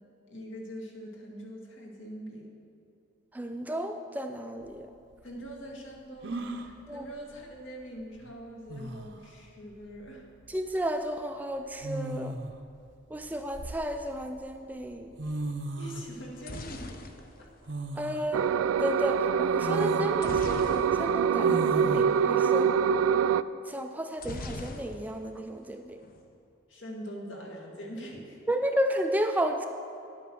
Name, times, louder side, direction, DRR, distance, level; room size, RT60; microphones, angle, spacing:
voice 1, 0.3-2.5 5.2-10.2 15.8-17.5 26.7-28.4, equal, 70° left, -1 dB, 2.1 m, -43 dB
voice 2, 3.3-4.9 6.9-7.1 10.5-12.4 13.1-15.2 18.0-18.5 18.8-22.7 23.6-26.0 28.5-29.7, equal, 10° right, 6 dB, 0.3 m, -32 dB
sound 1, 4.6-4.7 6.2-6.7 8.2-8.3 8.7-9.2 10.5-10.7 11.8-12.6 13.2-14.2 14.9-15.0 15.2-16.1 17.7-18.3 18.8-18.9 19.6-20.1 21.4-22.0, right 2 dB, 60° right, 0.7 m, -36 dB
sound 2, 16.1-18.2 20.2-21.3 21.6-21.8 22.0-22.3 24.2-25.3 25.6-26.3, left 2 dB, 45° left, 0.7 m, -41 dB
sound 3, 18.3-23.4, right 7 dB, 90° right, 0.3 m, -25 dB
10.0 x 8.8 x 6.2 m, 2.6 s
head